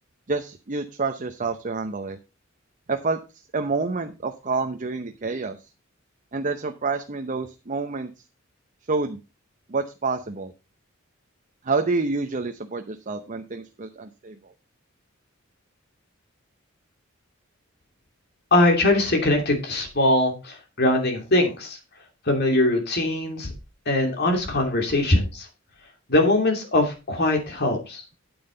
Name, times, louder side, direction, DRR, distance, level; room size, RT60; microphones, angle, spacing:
voice 1, 0.3-2.2 2.9-3.2 3.5-5.7 6.3-8.2 8.8-9.2 9.7-10.5 11.6-14.5, right 3 dB, 40° right, 6 dB, 0.8 m, -28 dB
voice 2, 18.5-21.8 22.3-23.5 23.9-25.5 26.1-28.0, left 1 dB, 55° left, 3 dB, 2.9 m, -21 dB
9.2 x 8.7 x 3.9 m, 0.28 s
head